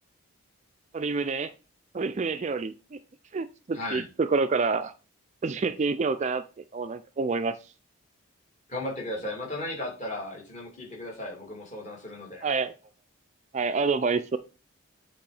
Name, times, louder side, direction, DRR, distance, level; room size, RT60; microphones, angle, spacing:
voice 1, 0.9-1.5 1.9-3.0 3.3-4.9 5.4-6.4 6.7-7.6 12.4-12.7 13.5-14.4, right 4 dB, 30° right, 11 dB, 0.3 m, -27 dB
voice 2, 3.7-4.1 8.7-12.4, left 1 dB, 35° left, -1 dB, 2.4 m, -35 dB
8.4 x 3.5 x 4.9 m, 0.33 s
head